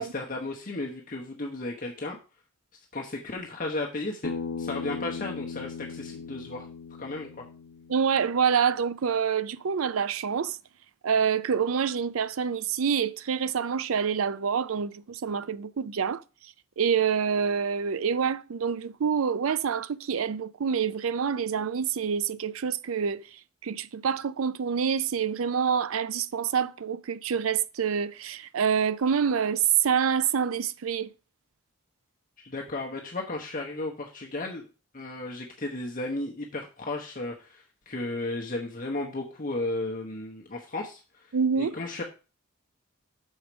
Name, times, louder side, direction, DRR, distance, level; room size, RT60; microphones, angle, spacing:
voice 1, 0.0-2.2 2.9-4.3 4.6-6.7 7.0-7.5 32.4-34.6 34.9-41.0 41.6-42.0, left 2 dB, 40° left, 1.0 m, -34 dB
Bass guitar, 4.2-8.5, left 5 dB, 70° left, 0.9 m, -37 dB
voice 2, 7.9-10.6 11.0-16.2 16.8-23.2 23.6-31.1 41.3-41.7, right 7 dB, 80° right, 0.5 m, -27 dB
6.4 x 5.0 x 6.0 m
head